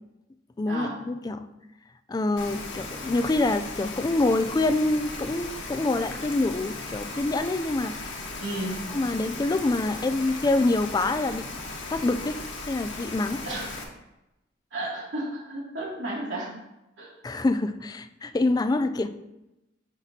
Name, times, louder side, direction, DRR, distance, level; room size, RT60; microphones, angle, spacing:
voice 1, 0.6-1.5 2.1-8.0 8.9-11.5 11.9-12.4 12.7-13.5 17.2-19.1, left 2 dB, 20° left, 10 dB, 0.3 m, -26 dB
Rain, 2.4-13.8, left 3 dB, 90° left, 1.4 m, -37 dB
voice 2, 8.4-8.8 13.4-13.7 14.7-16.5 17.0-17.1, right 1 dB, 75° right, -5 dB, 2.5 m, -32 dB
9.8 x 5.9 x 2.8 m, 0.93 s
head